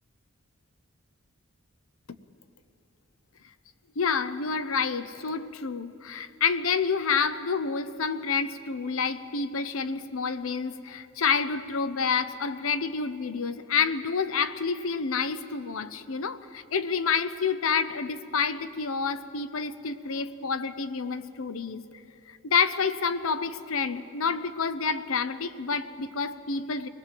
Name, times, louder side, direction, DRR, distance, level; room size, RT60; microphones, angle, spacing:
voice 1, 4.0-21.8 22.3-26.9, left 5 dB, 70° left, 13 dB, 0.8 m, -28 dB
24.0 x 19.5 x 7.7 m, 2.8 s
head